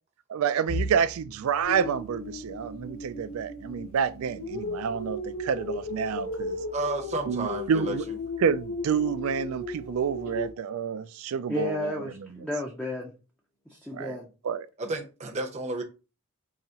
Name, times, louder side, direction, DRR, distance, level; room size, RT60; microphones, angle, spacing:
voice 1, 0.3-6.6 7.3-8.1 8.4-11.9 13.9-14.2 14.4-14.7, right 7 dB, 75° right, 0.3 m, -28 dB
sound 1, 0.7-12.5 12.9-13.2 13.6-13.7 14.6-15.1, equal, 45° left, 1.1 m, -44 dB
sound 2, 1.6-10.5, left 2 dB, 65° left, 0.8 m, -36 dB
voice 2, 6.7-8.1 14.8-15.8, right 2 dB, 30° right, 0.7 m, -32 dB
voice 3, 11.5-13.1 13.7-14.3, left 2 dB, 5° left, 0.5 m, -32 dB
4.7 x 2.9 x 2.8 m
head